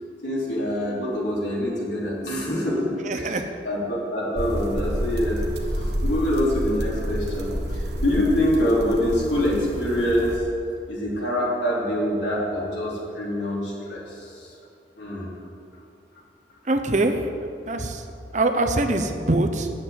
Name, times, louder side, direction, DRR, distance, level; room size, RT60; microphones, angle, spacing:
voice 1, 0.2-3.4 3.7-5.4 5.7-10.4 10.9-14.5 15.0-15.3, left 1 dB, 85° left, -5 dB, 3.5 m, -25 dB
voice 2, 3.0-3.4 16.7-17.3 17.7-18.1 18.3-19.7, right 2 dB, 45° right, 6 dB, 0.8 m, -23 dB
sound 1, 4.3-10.4, equal, 70° right, 1.2 m, -29 dB
9.8 x 7.6 x 8.3 m, 2.5 s
head